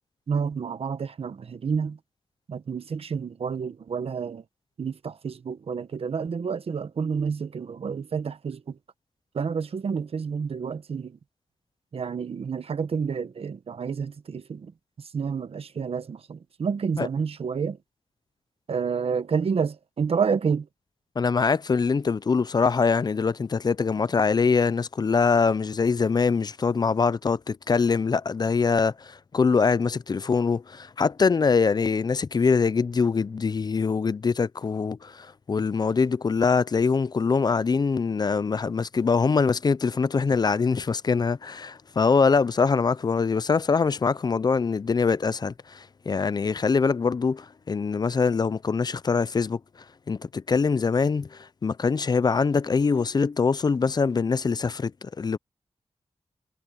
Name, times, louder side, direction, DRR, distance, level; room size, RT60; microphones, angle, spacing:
voice 1, 0.3-2.0 2.5-4.4 4.8-8.8 9.3-11.2 11.9-14.7 15.0-17.8 18.7-20.7, right 6 dB, 75° right, 1.2 m, -29 dB
voice 2, 21.2-49.6 50.1-55.4, left 5 dB, 45° left, 0.4 m, -23 dB
wide cardioid pair, 100°, 10 cm